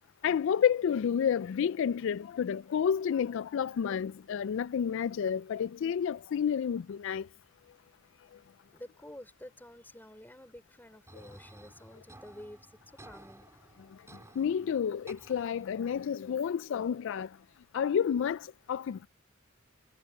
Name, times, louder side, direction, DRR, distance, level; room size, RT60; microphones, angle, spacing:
voice 1, 0.2-7.2 14.4-17.3 17.7-18.4 18.7-19.1, left 8 dB, 65° left, 0.3 m, -30 dB
voice 2, 8.7-12.7 13.0-13.5, left 1 dB, 10° left, 5.4 m, -50 dB
sound 1, 11.1-16.1, right 1 dB, 15° right, 3.6 m, -55 dB
head